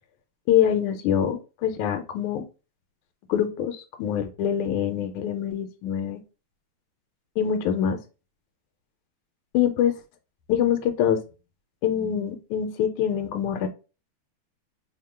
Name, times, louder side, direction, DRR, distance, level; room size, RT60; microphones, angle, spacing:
voice 1, 0.5-2.5 3.3-6.2 7.4-8.0 9.5-10.0 10.5-11.2 11.8-13.7, left 9 dB, 90° left, 6 dB, 1.5 m, -24 dB
3.4 x 2.1 x 4.3 m, 0.32 s
omnidirectional pair, 2.3 m